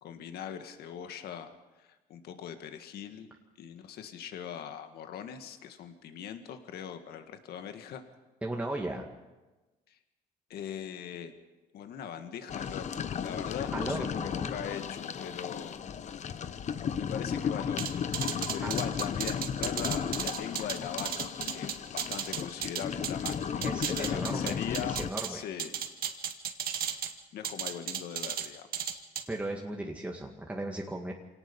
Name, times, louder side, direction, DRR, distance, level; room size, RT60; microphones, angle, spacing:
voice 1, 0.0-3.3 3.6-8.0 9.9-10.0 10.5-11.3 11.7-15.8 16.8-17.9 18.3-25.0 25.3-25.7 27.3-29.0, left 8 dB, 70° left, 7 dB, 2.0 m, -41 dB
voice 2, 8.4-9.1 13.7-14.7 16.4-16.6 18.6-18.7 23.6-25.4 29.3-31.1, right 1 dB, 10° right, 0 dB, 2.0 m, -36 dB
sound 1, 12.5-25.1, left 7 dB, 45° left, 1.0 m, -35 dB
sound 2, 17.8-23.3 23.6-25.3 25.6-27.1 27.4-28.5 28.7-29.2, right 9 dB, 60° right, 1.8 m, -34 dB
25.5 x 18.0 x 5.6 m, 1.1 s
cardioid pair, 110°, 17 cm